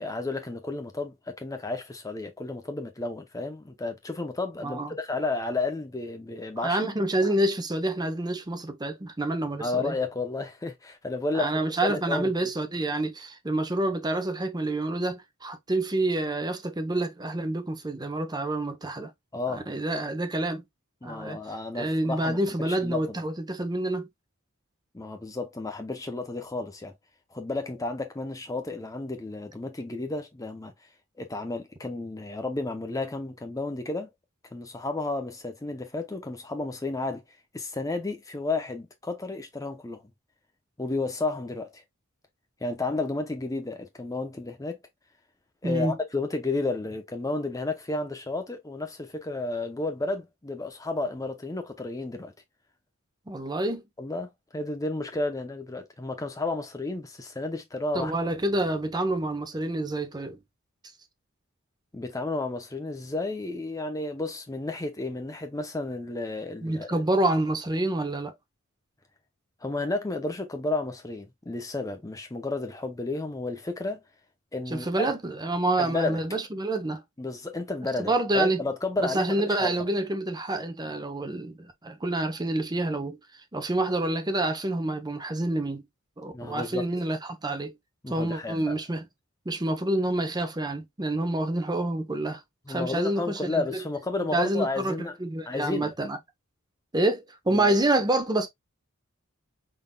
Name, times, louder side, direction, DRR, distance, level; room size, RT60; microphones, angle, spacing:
voice 1, 0.0-6.8 9.6-12.3 19.3-19.7 21.0-23.0 24.9-26.9 27.3-30.7 31.2-34.1 34.5-37.2 37.5-40.0 40.8-41.8 42.6-44.8 45.6-52.3 54.0-58.1 61.9-67.0 69.6-74.0 74.5-75.1 75.8-76.2 77.2-79.9 86.3-86.9 88.0-88.8 92.7-95.2 95.5-95.9 97.5-97.8, left 2 dB, 15° left, 0.6 m, -32 dB
voice 2, 6.6-9.9 11.3-19.1 19.5-20.6 21.0-21.4 21.7-24.1 45.6-46.0 53.3-53.8 57.9-60.4 66.6-68.4 74.7-77.0 78.0-78.6 79.0-83.2 83.5-85.8 86.2-87.7 88.1-89.1 89.5-92.4 92.7-93.7 94.3-94.9 95.2-96.2 96.9-98.5, right 1 dB, 20° right, 0.8 m, -28 dB
5.2 x 3.8 x 2.2 m
head